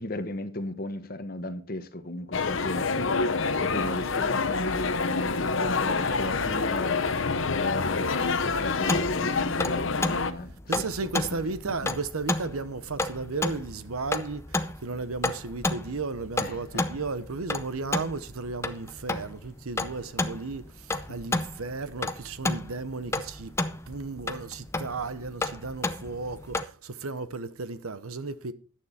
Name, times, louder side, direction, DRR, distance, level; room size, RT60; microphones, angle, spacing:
voice 1, 0.0-7.3 7.5-10.9 11.3-11.9 16.4-16.8, left 1 dB, 45° left, 1.2 m, -36 dB
sound 1, 2.3-10.3, left 4 dB, 65° left, 0.9 m, -27 dB
sound 2, 8.8-26.7, left 2 dB, 10° left, 0.6 m, -32 dB
voice 2, 10.7-23.6 23.9-28.5, right 3 dB, 85° right, 0.9 m, -34 dB
11.5 x 9.8 x 4.2 m
head